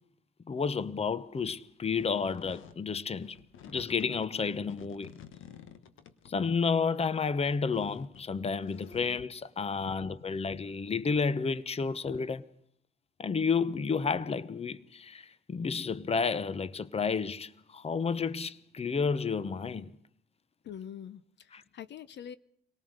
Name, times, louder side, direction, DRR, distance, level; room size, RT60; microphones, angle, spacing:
voice 1, 0.5-3.4 3.7-5.1 6.3-12.4 13.2-19.9 21.5-21.6, left 5 dB, 30° left, 0.9 m, -31 dB
sound 1, 1.4-2.8 3.2-6.8 7.2-9.2, left 8 dB, 85° left, 1.4 m, -52 dB
voice 2, 20.6-22.4, left 9 dB, 65° left, 0.8 m, -44 dB
25.0 x 18.5 x 6.5 m
cardioid pair, 90°, 20 cm